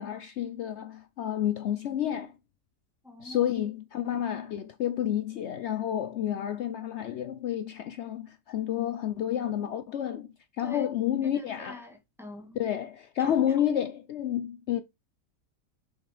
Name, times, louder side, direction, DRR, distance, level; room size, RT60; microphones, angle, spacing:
voice 1, 0.0-2.3 3.2-10.3 10.6-11.9 12.5-14.8, left 10 dB, 75° left, 0.6 m, -30 dB
voice 2, 3.0-3.5 10.6-10.9 11.6-12.6, left 2 dB, ahead, 1.7 m, -43 dB
7.0 x 5.9 x 3.3 m
omnidirectional pair, 1.9 m